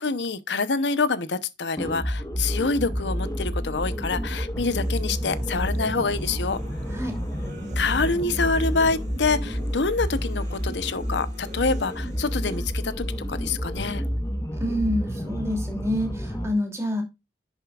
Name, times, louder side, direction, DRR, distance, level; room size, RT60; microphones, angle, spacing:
voice 1, 0.0-6.6 7.8-14.0, left 4 dB, 75° left, 0.8 m, -26 dB
sound 1, 1.8-16.5, equal, 20° left, 1.2 m, -29 dB
sound 2, 4.6-12.6, equal, 45° right, 2.1 m, -44 dB
voice 2, 14.5-17.0, equal, 15° right, 2.7 m, -27 dB
10.5 x 6.8 x 2.4 m
head